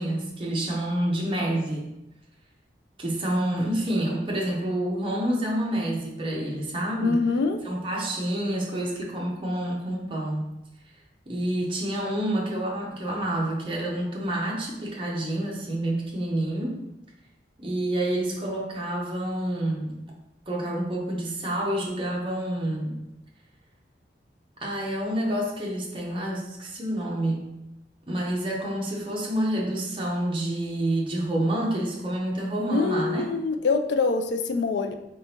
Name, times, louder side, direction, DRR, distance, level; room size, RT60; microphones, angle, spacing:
voice 1, 0.0-1.9 3.0-7.2 7.6-10.5 11.3-16.7 17.6-20.0 20.5-23.0 24.6-27.4 28.1-33.2, right 1 dB, 30° right, -3 dB, 0.8 m, -28 dB
voice 2, 7.0-7.6 32.7-34.9, left 4 dB, 75° left, 6 dB, 0.4 m, -24 dB
3.7 x 3.7 x 2.8 m, 0.90 s
head